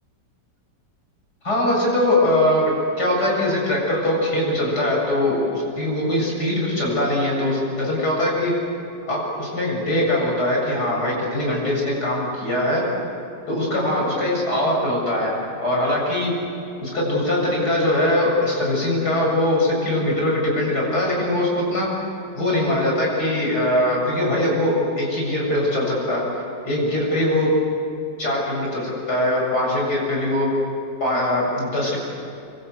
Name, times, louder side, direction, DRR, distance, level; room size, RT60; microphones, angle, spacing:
voice 1, 1.4-8.5 9.1-12.8 13.5-16.3 16.8-21.9 22.3-26.2 26.6-27.5 28.2-30.5 31.0-32.0, left 1 dB, 60° left, -2 dB, 8.0 m, -22 dB
26.5 x 24.0 x 8.0 m, 2.8 s
omnidirectional pair, 1.9 m